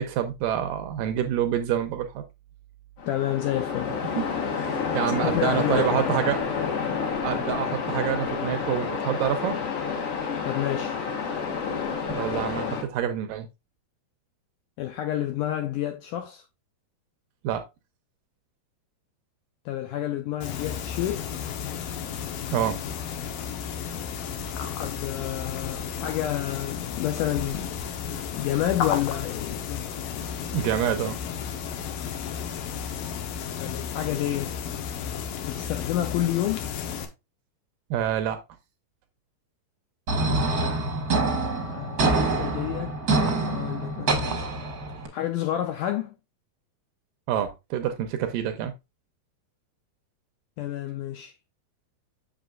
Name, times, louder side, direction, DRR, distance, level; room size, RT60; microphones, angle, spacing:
voice 1, 0.0-2.2 4.2-4.3 4.5-6.4 6.9-9.6 12.2-13.5 17.4-17.6 22.5-22.8 30.5-31.2 37.9-38.4 47.3-48.7, right 10 dB, 80° right, 2.1 m, -27 dB
Waves surf, 3.0-12.8, left 6 dB, 55° left, 1.7 m, -29 dB
voice 2, 3.1-4.0 5.2-6.1 10.4-11.0 14.8-16.5 19.7-21.3 24.8-27.7 28.4-29.9 33.6-34.5 35.4-36.7 41.7-44.4 45.1-46.1 50.6-51.3, left 12 dB, 90° left, 1.8 m, -29 dB
sound 1, 20.4-37.1, left 7 dB, 75° left, 2.4 m, -33 dB
sound 2, 40.1-45.1, right 2 dB, 50° right, 1.0 m, -25 dB
7.5 x 6.8 x 2.4 m
omnidirectional pair, 4.4 m